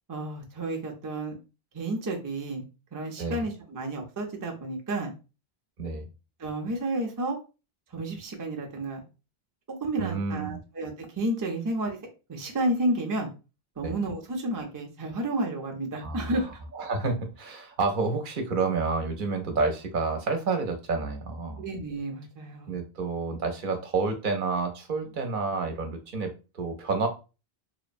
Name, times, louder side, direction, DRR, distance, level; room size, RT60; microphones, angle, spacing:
voice 1, 0.1-1.4 1.7-5.1 6.4-7.4 7.9-9.0 9.7-12.0 12.3-13.3 13.8-16.5 21.6-22.8, right 1 dB, 30° right, 2 dB, 0.4 m, -31 dB
voice 2, 10.0-10.6 13.8-13.9 16.0-16.3 16.7-21.6 22.7-27.1, right 4 dB, 60° right, 4 dB, 0.7 m, -29 dB
2.9 x 2.0 x 2.5 m, 0.31 s
omnidirectional pair, 1.1 m